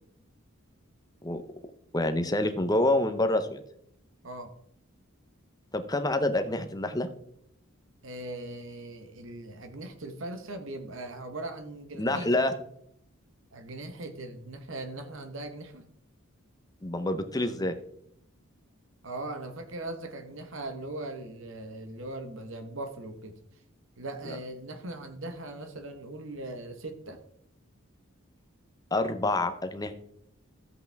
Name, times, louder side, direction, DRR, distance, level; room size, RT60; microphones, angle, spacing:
voice 1, 1.9-3.6 5.7-7.1 12.0-12.5 16.8-17.8 28.9-29.9, left 1 dB, 15° left, 8 dB, 0.7 m, -27 dB
voice 2, 8.0-12.3 13.5-15.8 19.0-23.3 24.0-27.2, right 2 dB, 65° right, 8 dB, 1.2 m, -39 dB
12.5 x 8.1 x 3.5 m, 0.72 s
head